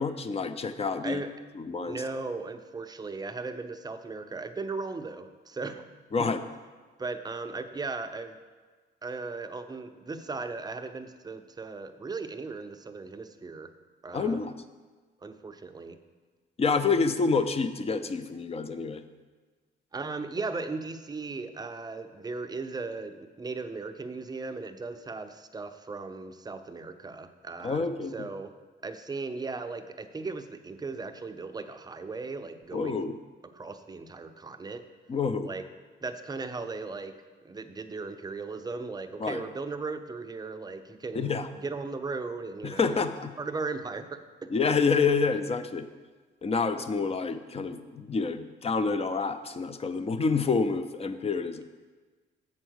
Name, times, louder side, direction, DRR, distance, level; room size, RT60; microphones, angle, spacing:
voice 1, 0.0-1.2 1.6-2.0 6.1-6.4 14.1-14.5 16.6-19.0 27.6-28.3 32.7-33.1 35.1-35.5 39.2-39.4 41.1-41.5 42.6-43.3 44.5-45.8 46.4-51.6, left 4 dB, 30° left, 10 dB, 0.5 m, -28 dB
voice 2, 1.8-5.8 6.2-6.3 7.0-8.4 9.0-13.7 14.0-14.4 15.2-16.0 19.9-27.9 28.1-28.5 28.8-33.1 33.5-34.8 35.4-35.6 36.0-37.1 37.4-43.0 43.4-44.5, right 3 dB, 20° right, 8 dB, 0.5 m, -37 dB
7.1 x 4.4 x 6.4 m, 1.4 s
cardioid pair, 90°, 20 cm